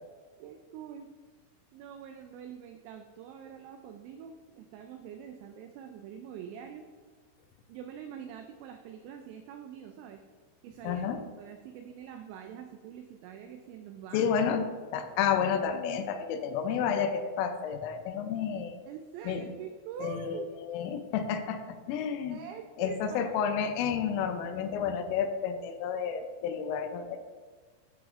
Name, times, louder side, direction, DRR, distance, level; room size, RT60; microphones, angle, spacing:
voice 1, 0.4-1.1 1.7-6.9 7.7-10.2 10.6-11.0 11.4-14.3 18.9-20.5 22.3-23.3, right 8 dB, 90° right, 5 dB, 2.6 m, -44 dB
voice 2, 10.8-11.2 14.1-18.7 19.3-19.4 20.0-21.6 21.9-22.4 22.8-27.2, left 7 dB, 85° left, 8 dB, 3.2 m, -30 dB
12.0 x 5.0 x 2.5 m, 1.5 s
omnidirectional pair, 5.7 m